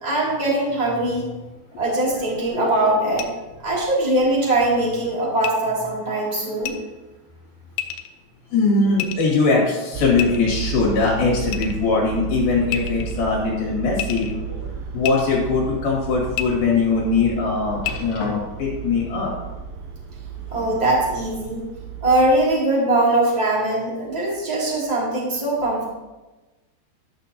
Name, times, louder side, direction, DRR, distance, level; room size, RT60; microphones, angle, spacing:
voice 1, 0.0-1.3 1.8-3.3 3.6-6.8 20.5-21.6 22.0-25.8, right 1 dB, 15° right, -6 dB, 1.4 m, -21 dB
sound 1, 3.2-3.3 5.4-5.5 6.6-6.7 7.8-8.1 9.0-9.4 10.2-10.7 11.5-11.9 12.7-13.2 14.0-14.3 15.0-15.1 16.3-16.5 17.8-17.9, left 12 dB, 80° left, 2.4 m, -29 dB
voice 2, 8.5-14.3 14.9-19.3, left 4 dB, 65° left, -3 dB, 3.6 m, -21 dB
sound 2, 9.9-22.5, right 7 dB, 90° right, 2.0 m, -33 dB
sound 3, 13.9-14.8 15.3-15.4 16.0-16.1 17.8-18.7 20.1-20.8 21.8-21.9, left 2 dB, 50° left, 2.3 m, -38 dB
12.5 x 6.6 x 2.7 m, 1.1 s
omnidirectional pair, 4.9 m